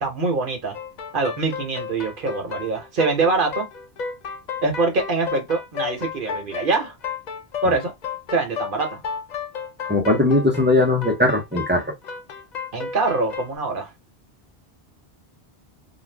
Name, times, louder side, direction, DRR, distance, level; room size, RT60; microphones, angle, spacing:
voice 1, 0.0-0.8 1.1-3.7 4.6-6.9 7.6-7.9 8.3-9.0 12.7-13.9, right 3 dB, 55° right, 1.1 m, -24 dB
sound 1, 0.7-13.5, left 6 dB, 55° left, 0.5 m, -33 dB
voice 2, 9.9-11.8, left 2 dB, 10° right, 0.7 m, -19 dB
2.6 x 2.4 x 3.3 m
omnidirectional pair, 1.1 m